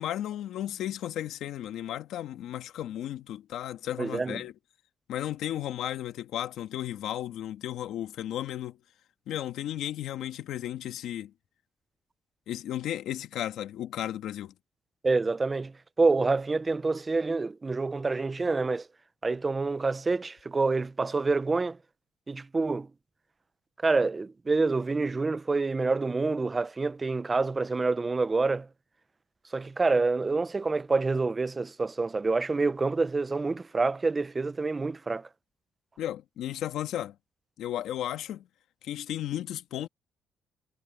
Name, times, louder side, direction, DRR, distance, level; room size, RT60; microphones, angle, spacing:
voice 1, 0.0-4.5 5.1-8.8 9.3-11.3 12.5-14.5 36.0-37.1 37.6-38.5 38.8-39.9, left 12 dB, 80° left, 1.7 m, -34 dB
voice 2, 4.0-4.4 15.0-15.7 16.0-18.9 19.2-21.8 22.3-22.9 23.8-28.7 29.5-35.3, right 3 dB, 25° right, 0.8 m, -27 dB
cardioid pair, 90°, 0 cm